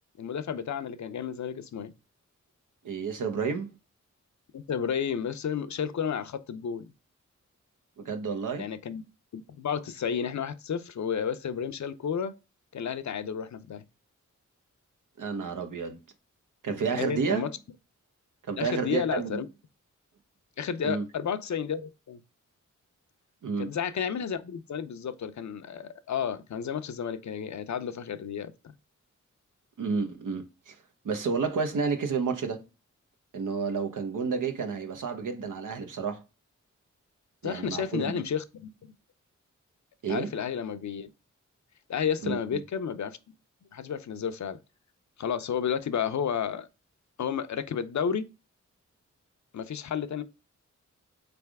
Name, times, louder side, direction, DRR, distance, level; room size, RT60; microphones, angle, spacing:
voice 1, 0.2-1.9 4.5-6.9 8.6-9.0 9.3-12.3 12.7-13.8 17.0-17.5 18.6-19.5 20.6-22.2 23.6-28.5 37.4-38.7 40.1-41.1 41.9-43.2 43.7-44.6 45.2-46.7 47.2-48.2 49.5-50.2, left 7 dB, 65° left, 0.6 m, -32 dB
voice 2, 2.8-3.7 8.0-8.6 15.2-16.0 16.6-17.4 18.5-19.4 20.8-21.1 23.4-23.7 29.8-30.8 31.0-32.6 33.3-36.2 37.4-38.2 40.0-40.3 42.2-42.6, right 5 dB, 90° right, 0.9 m, -30 dB
3.9 x 3.4 x 3.4 m
cardioid pair, 60°, 30 cm